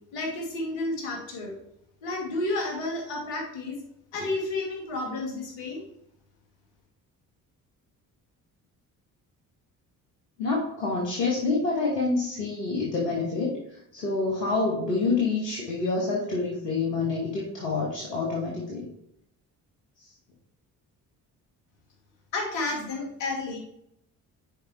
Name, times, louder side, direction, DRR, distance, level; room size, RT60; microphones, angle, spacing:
voice 1, 0.1-1.5 2.0-3.8 4.1-5.8 22.3-23.6, left 2 dB, 65° left, 1 dB, 2.3 m, -31 dB
voice 2, 10.4-18.9, left 3 dB, 80° left, -3 dB, 1.3 m, -27 dB
10.0 x 4.7 x 3.5 m, 0.74 s
figure-of-eight pair, 40°, 48 cm